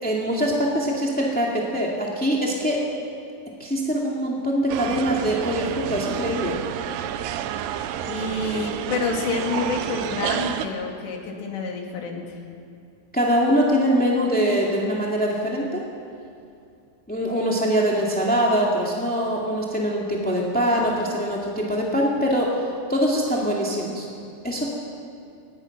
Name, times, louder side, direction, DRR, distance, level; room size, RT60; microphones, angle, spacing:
voice 1, 0.0-2.8 3.6-6.6 13.1-15.8 17.1-24.1 24.4-24.7, equal, 5° left, -3 dB, 0.8 m, -23 dB
sound 1, 4.7-10.7, right 10 dB, 85° right, 2.7 m, -29 dB
voice 2, 8.1-12.2, left 3 dB, 85° left, 1 dB, 4.6 m, -28 dB
23.0 x 20.0 x 6.0 m, 2.4 s
omnidirectional pair, 4.8 m